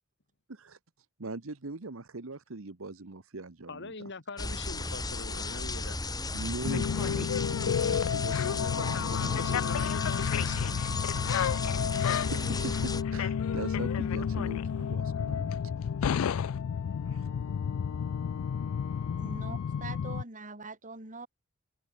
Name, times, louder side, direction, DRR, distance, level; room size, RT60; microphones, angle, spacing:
voice 1, 1.2-3.9 6.3-9.5 12.3-15.6 17.1-17.3, right 3 dB, 70° right, 1.2 m, -41 dB
voice 2, 3.7-6.2 8.6-10.8, left 3 dB, 60° left, 2.8 m, -42 dB
sound 1, 4.4-13.0, left 3 dB, 20° left, 2.6 m, -35 dB
sound 2, 6.6-20.2, left 7 dB, 85° left, 0.4 m, -30 dB
voice 3, 19.2-21.3, right 3 dB, 40° right, 5.3 m, -43 dB
head